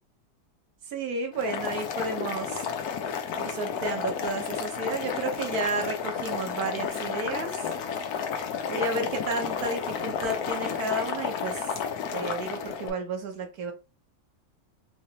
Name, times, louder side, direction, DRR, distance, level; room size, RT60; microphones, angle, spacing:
voice 1, 0.9-2.6 3.3-7.7 8.7-11.7 12.1-13.7, right 3 dB, 70° right, 5 dB, 1.3 m, -32 dB
Boiling, 1.3-12.9, left 7 dB, 75° left, 1.1 m, -32 dB
3.9 x 3.1 x 2.7 m, 0.30 s
omnidirectional pair, 1.7 m